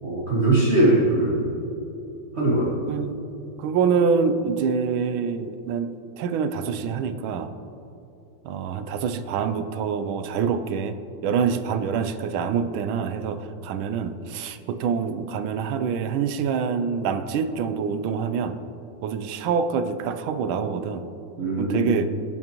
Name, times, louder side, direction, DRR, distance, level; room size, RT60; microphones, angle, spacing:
voice 1, 0.0-1.5 2.3-2.7 21.4-21.9, right 1 dB, 35° right, -6 dB, 1.3 m, -21 dB
voice 2, 3.6-7.5 8.4-11.0 11.2-18.6 19.0-21.0 21.6-22.1, right 6 dB, 75° right, 10 dB, 1.3 m, -26 dB
17.5 x 6.0 x 3.0 m, 2.9 s
omnidirectional pair, 2.3 m